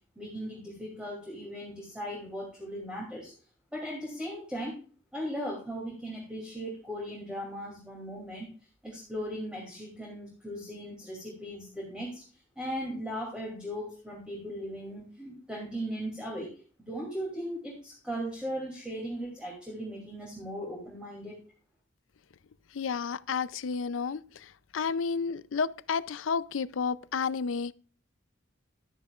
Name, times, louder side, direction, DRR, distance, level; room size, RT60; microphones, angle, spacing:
voice 1, 0.2-3.3 3.7-4.7 5.1-8.5 8.8-12.2 12.6-16.5 16.8-21.4, equal, 5° right, 2.7 m, -38 dB
voice 2, 22.7-24.2 24.7-27.7, left 5 dB, 90° left, 0.5 m, -31 dB
12.0 x 10.5 x 2.4 m
head